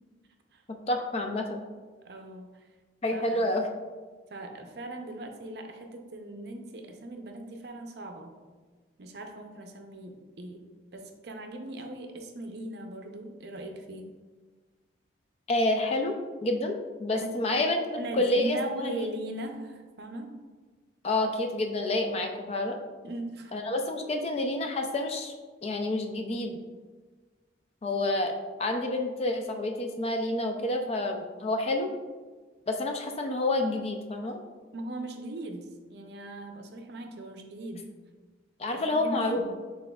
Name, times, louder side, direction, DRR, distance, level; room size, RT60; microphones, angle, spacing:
voice 1, 0.7-1.6 3.0-3.7 15.5-16.2 16.4-19.0 21.0-22.8 23.5-25.3 25.6-26.6 27.8-28.3 28.6-31.9 32.7-34.4 38.6-39.4, left 2 dB, 30° left, 4 dB, 0.3 m, -28 dB
voice 2, 2.0-2.7 3.1-3.6 4.3-8.3 9.0-14.1 17.1-17.3 18.0-20.4 23.0-23.6 34.7-37.9 38.7-39.6, right 1 dB, 55° right, 4 dB, 0.5 m, -39 dB
6.2 x 3.6 x 2.3 m, 1.4 s
head